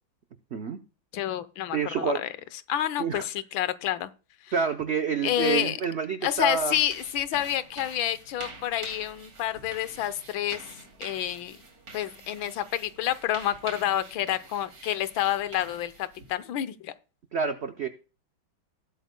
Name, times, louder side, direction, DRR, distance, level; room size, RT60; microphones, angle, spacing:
voice 1, 1.1-2.3 2.7-4.1 5.2-5.8 6.2-10.6 11.0-11.6 11.9-16.9, left 12 dB, 80° left, 1.5 m, -29 dB
voice 2, 1.7-2.2 3.0-3.3 4.5-6.8 17.3-17.9, right 6 dB, 80° right, 0.5 m, -28 dB
sound 1, 6.3-16.5, right 3 dB, 45° right, 3.3 m, -46 dB
18.5 x 8.1 x 2.2 m
omnidirectional pair, 2.2 m